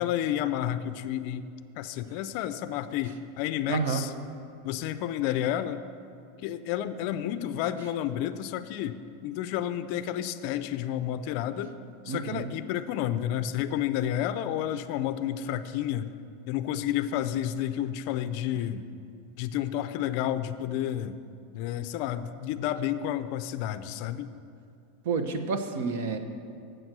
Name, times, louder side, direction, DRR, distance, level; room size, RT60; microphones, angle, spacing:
voice 1, 0.0-1.5 1.8-4.1 4.6-5.8 6.4-11.7 12.1-16.1 16.5-18.8 19.4-21.2 21.5-24.3, left 11 dB, 50° left, 13 dB, 0.4 m, -30 dB
voice 2, 3.7-4.0 12.1-12.5 25.0-26.2, right 5 dB, 65° right, 8 dB, 0.8 m, -29 dB
7.9 x 7.7 x 6.1 m, 2.5 s
supercardioid pair, 160°, 0 cm